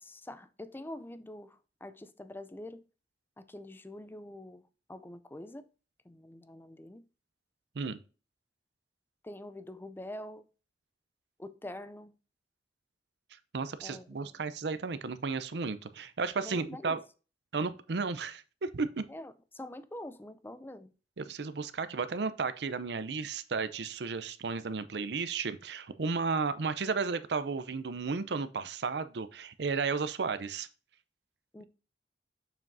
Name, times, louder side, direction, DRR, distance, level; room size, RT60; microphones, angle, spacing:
voice 1, 0.0-2.8 3.4-4.6 4.9-5.6 6.1-7.0 9.2-10.4 11.4-12.1 13.8-14.3 16.4-17.0 19.1-20.9 31.5-31.6, left 1 dB, 10° left, 0.4 m, -45 dB
voice 2, 13.5-17.0 17.5-19.0 21.2-30.7, right 4 dB, 70° right, 0.6 m, -33 dB
6.9 x 6.0 x 2.6 m
head